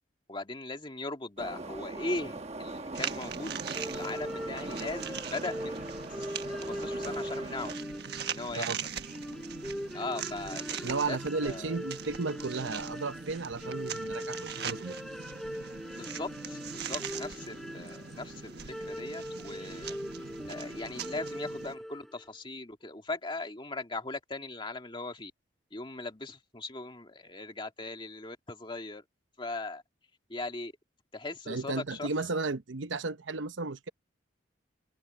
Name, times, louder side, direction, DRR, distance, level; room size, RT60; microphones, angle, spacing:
voice 1, 0.3-7.7 8.3-8.7 9.9-11.8 15.9-20.0 20.5-25.3 25.7-29.0 29.4-29.8 30.3-30.7 31.1-32.1, left 2 dB, 25° left, 2.2 m, -39 dB
Subway metro underground, 1.4-7.8, right 2 dB, 35° right, 1.1 m, -41 dB
sound 1, 3.0-21.8, right 7 dB, 60° right, 1.4 m, -41 dB
sound 2, 3.7-22.2, equal, ahead, 4.7 m, -41 dB
voice 2, 10.8-15.0 31.5-33.9, right 3 dB, 80° right, 0.9 m, -34 dB
head